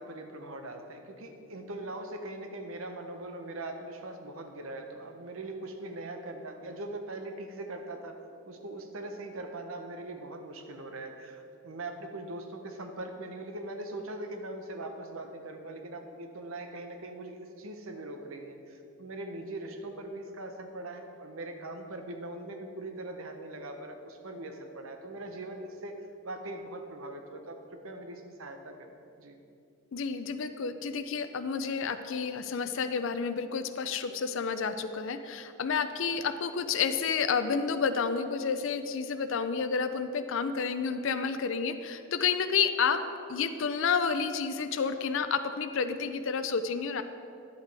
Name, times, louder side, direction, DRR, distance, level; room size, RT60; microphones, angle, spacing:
voice 1, 0.0-8.2 8.5-26.0 26.2-28.9 29.2-29.4, right 2 dB, 75° right, 5 dB, 0.8 m, -41 dB
voice 2, 29.9-43.0 43.3-47.0, left 6 dB, 65° left, 10 dB, 0.4 m, -30 dB
10.5 x 8.0 x 3.4 m, 2.6 s
head